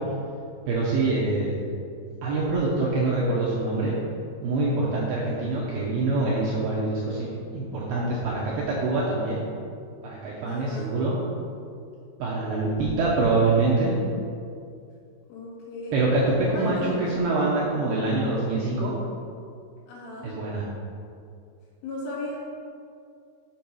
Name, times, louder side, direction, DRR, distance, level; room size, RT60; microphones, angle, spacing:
voice 1, 0.7-1.6 2.2-3.9 4.4-7.3 7.5-9.4 10.0-11.2 12.2-13.9 15.9-18.9 20.2-20.7, right 3 dB, 75° right, -6 dB, 2.3 m, -25 dB
voice 2, 10.5-11.0 15.3-16.1 16.5-17.1 19.9-20.4 21.8-22.4, left 2 dB, 70° left, -6 dB, 3.6 m, -35 dB
7.7 x 4.6 x 5.4 m, 2.4 s
omnidirectional pair, 5.4 m